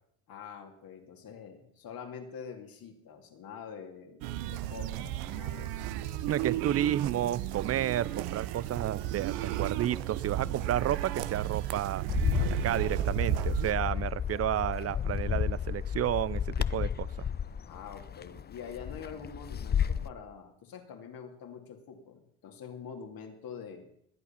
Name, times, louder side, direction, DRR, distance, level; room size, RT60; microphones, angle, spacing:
voice 1, 0.3-5.9 17.6-23.9, left 6 dB, 60° left, 3 dB, 2.7 m, -45 dB
sound 1, 4.2-13.7, right 13 dB, 85° right, 0.9 m, -33 dB
voice 2, 6.3-12.0 12.5-17.1, right 11 dB, 40° right, 21 dB, 0.6 m, -31 dB
Bird, 12.1-20.1, left 8 dB, 25° left, 0.5 m, -32 dB
21.5 x 8.4 x 5.8 m, 0.73 s
supercardioid pair, 75°, 39 cm